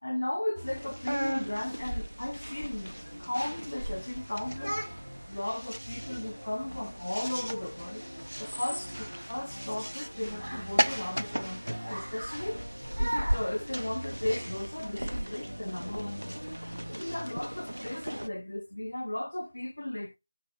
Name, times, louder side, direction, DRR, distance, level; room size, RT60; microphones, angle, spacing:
voice 1, 0.0-2.9 3.2-4.8 5.3-8.1 8.4-12.6 12.9-16.4 16.9-20.2, left 1 dB, 75° left, 0.4 m, -35 dB
sound 1, 0.6-18.3, equal, 90° right, 0.3 m, -36 dB
5.5 x 2.6 x 2.5 m
figure-of-eight pair, 160°, 0 cm